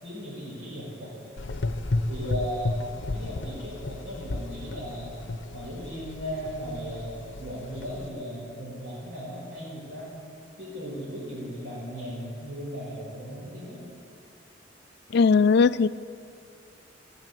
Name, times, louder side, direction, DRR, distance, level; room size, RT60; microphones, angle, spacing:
voice 1, 0.0-1.5 2.1-2.8 3.1-5.1 5.5-10.2 10.6-13.8, equal, 75° right, -6 dB, 4.8 m, -37 dB
Gurgling / Engine, 1.4-8.1, left 2 dB, 80° left, 0.7 m, -33 dB
voice 2, 15.1-15.9, left 5 dB, 60° left, 15 dB, 0.4 m, -18 dB
14.5 x 11.0 x 9.1 m, 2.4 s
head